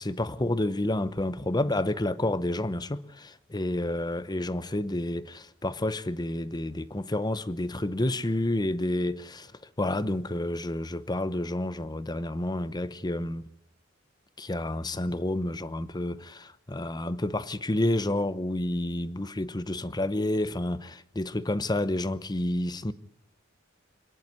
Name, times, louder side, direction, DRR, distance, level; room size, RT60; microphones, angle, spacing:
voice 1, 0.0-9.5 9.8-13.5 14.4-22.9, left 1 dB, 20° left, 0.9 m, -29 dB
26.5 x 10.5 x 9.4 m
head